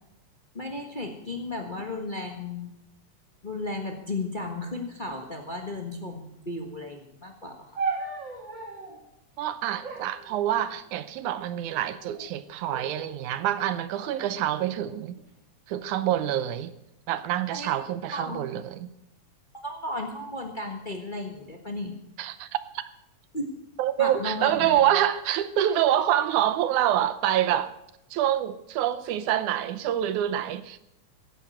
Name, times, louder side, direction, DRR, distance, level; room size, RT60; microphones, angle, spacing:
voice 1, 0.5-2.7 3.4-7.7 17.5-17.7 18.1-18.5 19.6-21.9 23.3-23.5 24.0-24.8, left 2 dB, 40° left, 0.6 m, -34 dB
sound 1, 7.8-9.0 9.8-11.0 11.8-12.3 12.7-13.2 13.9-15.2 16.0-16.4, right 4 dB, 35° right, 3.0 m, -37 dB
voice 2, 9.4-15.2 15.7-16.7 17.1-18.9 22.2-22.8 23.8-27.7 28.1-30.8, right 11 dB, 80° right, 2.2 m, -26 dB
16.0 x 9.5 x 7.8 m
omnidirectional pair, 3.6 m